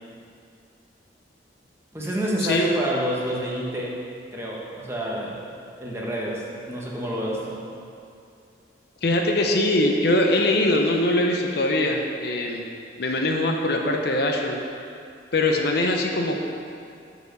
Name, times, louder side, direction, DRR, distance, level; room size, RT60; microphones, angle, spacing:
voice 1, 1.9-4.0 4.3-5.4 5.8-7.7, equal, 15° right, -4 dB, 1.1 m, -28 dB
voice 2, 9.0-12.6 13.0-14.6 15.3-16.4, left 1 dB, 60° left, 2 dB, 0.7 m, -22 dB
7.1 x 5.0 x 6.4 m, 2.5 s
head